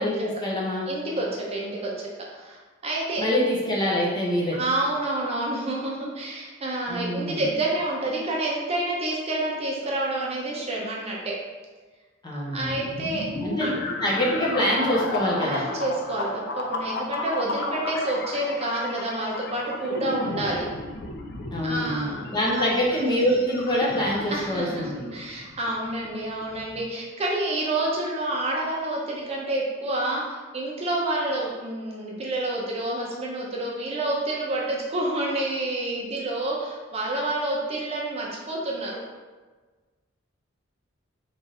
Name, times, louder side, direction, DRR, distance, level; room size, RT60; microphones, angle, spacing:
voice 1, 0.0-0.9 3.2-4.6 6.9-7.4 12.2-12.8 13.4-13.7 14.0-15.7 21.5-25.2, equal, 20° left, -5 dB, 0.8 m, -25 dB
voice 2, 0.9-3.3 4.5-11.3 12.5-13.2 13.6-13.7 15.4-20.7 21.6-22.3 22.6-22.7 24.3-39.0, right 2 dB, 30° right, -3 dB, 0.7 m, -28 dB
sound 1, 12.6-26.9, left 2 dB, 50° left, 0.4 m, -34 dB
3.5 x 2.6 x 4.0 m, 1.3 s
head